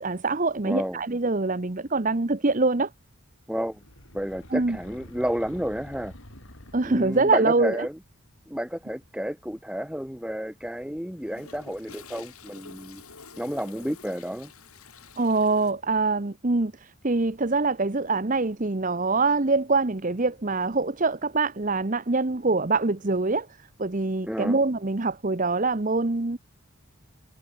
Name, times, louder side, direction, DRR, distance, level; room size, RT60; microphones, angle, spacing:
voice 1, 0.0-2.9 4.5-4.8 6.7-7.9 15.2-23.5 23.8-26.4, right 3 dB, 35° right, 0.9 m, -24 dB
voice 2, 0.6-1.0 3.5-3.8 4.1-6.2 6.8-8.0 8.5-13.0 13.4-14.5 24.2-24.6, equal, 5° right, 1.3 m, -31 dB
sound 1, 3.6-7.5, left 1 dB, 65° left, 5.2 m, -47 dB
Toilet flush, 10.6-15.7, left 5 dB, 90° left, 7.1 m, -49 dB
head